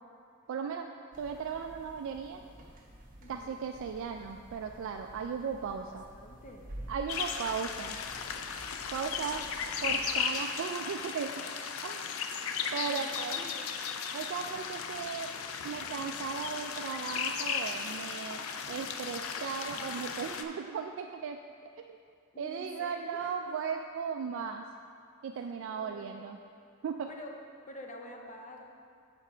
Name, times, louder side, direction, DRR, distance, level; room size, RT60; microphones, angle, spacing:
voice 1, 0.5-0.9 1.2-2.5 3.3-6.0 6.9-8.0 8.9-9.5 9.8-11.4 11.8-12.1 12.7-13.4 14.1-15.3 15.6-18.4 18.7-21.4 21.8-22.0 22.4-24.7 25.2-26.4 26.8-27.1, right 6 dB, 65° right, 4 dB, 0.3 m, -36 dB
sound 1, 1.1-10.2, right 1 dB, 40° right, 1.0 m, -50 dB
voice 2, 3.2-3.6 5.9-6.7 12.9-13.7 22.3-23.3 25.7-26.3 27.1-27.3 27.7-28.6, left 1 dB, 35° left, 2 dB, 0.7 m, -47 dB
sound 2, 7.1-20.4, left 6 dB, 75° left, 0.4 m, -36 dB
7.0 x 5.6 x 4.4 m, 2.3 s
head